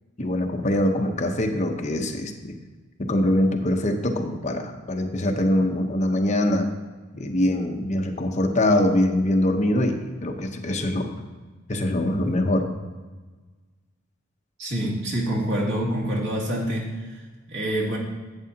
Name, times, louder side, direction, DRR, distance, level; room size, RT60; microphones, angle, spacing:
voice 1, 0.2-2.5 3.0-6.7 7.1-11.1 11.7-12.7, left 1 dB, 35° left, 4 dB, 0.8 m, -23 dB
voice 2, 14.6-18.0, right 1 dB, 80° right, -3 dB, 2.4 m, -27 dB
11.0 x 8.5 x 2.8 m, 1.3 s
head